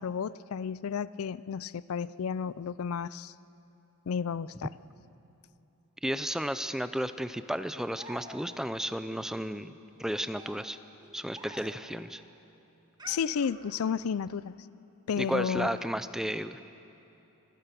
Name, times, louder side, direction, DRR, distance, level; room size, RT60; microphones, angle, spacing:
voice 1, 0.0-3.3 4.1-4.7 13.1-14.6 15.1-15.8, left 6 dB, 75° left, 18 dB, 0.4 m, -32 dB
voice 2, 6.0-10.8 11.1-12.2 15.2-16.6, equal, ahead, 12 dB, 0.5 m, -33 dB
sound 1, 7.9-8.8 10.0-12.0 13.0-14.1, right 2 dB, 20° right, 1.4 m, -50 dB
25.0 x 15.5 x 6.9 m, 2.8 s
head